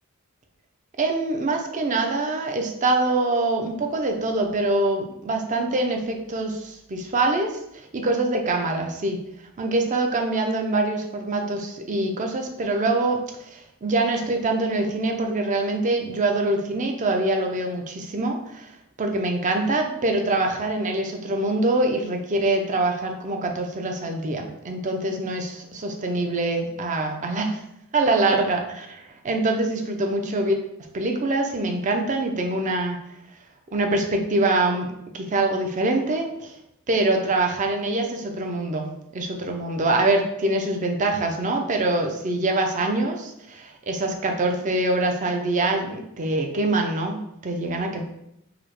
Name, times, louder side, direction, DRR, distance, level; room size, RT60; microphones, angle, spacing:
voice 1, 1.0-7.5 7.9-9.2 9.6-18.7 19.0-27.6 27.9-30.5 30.9-33.0 33.7-36.5 36.9-38.9 39.1-48.0, right 2 dB, 35° right, 3 dB, 0.5 m, -24 dB
4.8 x 2.1 x 3.0 m, 0.79 s
head